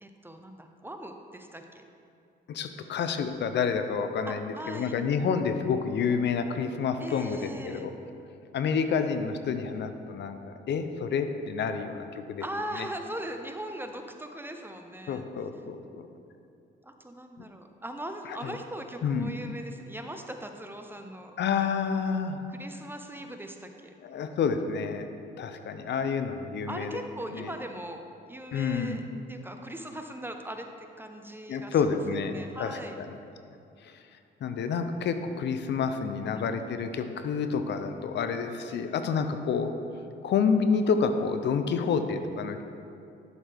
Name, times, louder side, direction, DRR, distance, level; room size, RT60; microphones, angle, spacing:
voice 1, 0.0-1.8 4.3-4.9 7.0-7.8 12.4-15.2 16.8-21.3 22.5-23.9 26.7-29.0 29.3-32.0 32.3-33.0 38.7-38.8, right 1 dB, 10° right, 5 dB, 0.6 m, -40 dB
voice 2, 2.5-7.9 8.5-10.4 10.7-12.4 12.8-12.9 15.1-16.1 17.4-17.5 18.3-18.6 19.0-19.4 21.4-22.4 24.0-25.1 25.4-27.0 27.3-27.5 28.5-29.0 31.5-33.2 33.8-34.0 34.4-39.7 40.2-42.6, left 6 dB, 60° left, 8 dB, 0.6 m, -29 dB
11.0 x 6.3 x 3.5 m, 2.5 s
cardioid pair, 90°, 20 cm